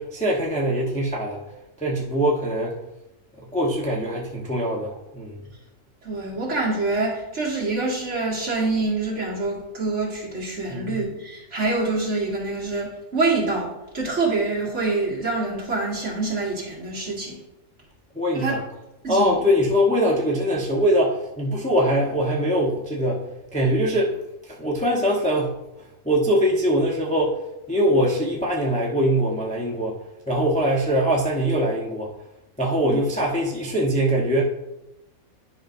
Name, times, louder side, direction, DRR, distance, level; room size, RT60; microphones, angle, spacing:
voice 1, 0.0-1.4 1.8-2.8 3.4-5.5 10.7-11.0 18.1-18.6 19.1-23.2 23.5-24.1 24.5-25.5 26.0-27.3 27.7-30.0 30.3-32.1 32.6-34.4, equal, 5° left, -3 dB, 0.8 m, -22 dB
voice 2, 6.0-17.4 18.3-18.6 19.0-19.3 32.8-33.0, right 3 dB, 55° right, -5 dB, 2.4 m, -26 dB
10.5 x 5.6 x 2.6 m, 0.91 s
omnidirectional pair, 1.5 m